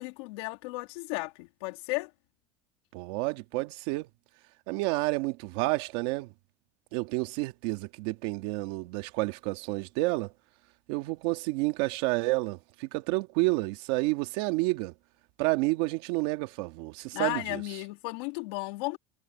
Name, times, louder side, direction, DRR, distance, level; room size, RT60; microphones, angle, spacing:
voice 1, 0.0-2.1 17.1-19.0, left 25 dB, 85° left, 3.1 m, -34 dB
voice 2, 2.9-4.1 4.7-6.3 6.9-10.3 10.9-14.9 15.4-17.6, right 23 dB, 80° right, 2.0 m, -30 dB
cardioid pair, 130°, 13 cm